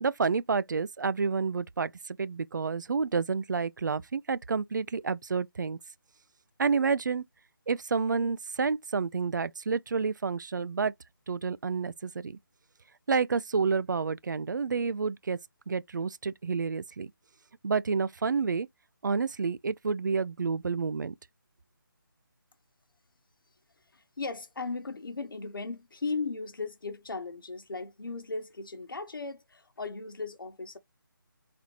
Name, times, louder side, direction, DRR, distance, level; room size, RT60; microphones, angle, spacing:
voice 1, 0.0-5.8 6.6-7.2 7.7-10.9 11.3-12.4 13.1-15.4 15.7-17.1 17.6-18.7 19.0-21.1, right 5 dB, 55° right, 0.4 m, -29 dB
voice 2, 23.9-30.8, left 4 dB, 70° left, 1.1 m, -37 dB
4.2 x 2.7 x 4.6 m
figure-of-eight pair, 160°, 12 cm